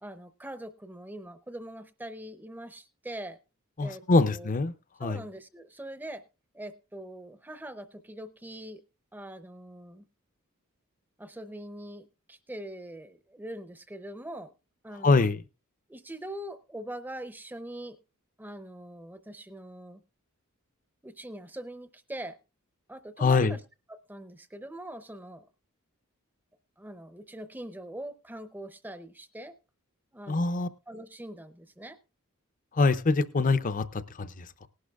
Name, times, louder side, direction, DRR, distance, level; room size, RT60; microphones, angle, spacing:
voice 1, 0.0-3.4 3.8-4.5 5.0-6.2 6.5-8.8 9.1-10.0 11.2-14.5 14.8-15.3 15.9-18.0 18.4-20.0 21.0-22.4 22.9-23.6 23.9-25.5 26.8-29.5 30.1-32.0, right 1 dB, 10° right, 0.6 m, -42 dB
voice 2, 3.8-4.7 5.0-5.2 15.0-15.4 23.2-23.5 30.3-30.7 32.8-34.7, left 3 dB, 40° left, 0.6 m, -24 dB
19.0 x 11.5 x 2.3 m
head